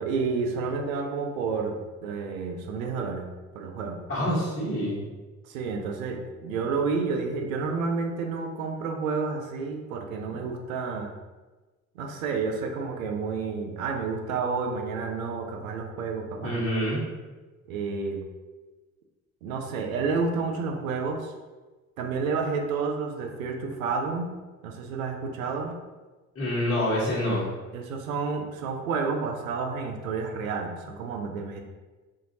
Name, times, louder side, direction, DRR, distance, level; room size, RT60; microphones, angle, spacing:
voice 1, 0.0-1.8 2.0-3.3 3.5-4.0 5.4-11.1 12.0-16.6 17.7-18.2 19.4-21.3 22.0-24.3 24.6-25.7 27.7-31.6, right 4 dB, 75° right, 3 dB, 0.6 m, -30 dB
voice 2, 4.1-5.0 10.3-10.4 16.4-17.0 26.3-27.5, equal, 30° left, -8 dB, 1.2 m, -27 dB
4.4 x 2.5 x 2.8 m, 1.2 s
figure-of-eight pair, 55°, 42 cm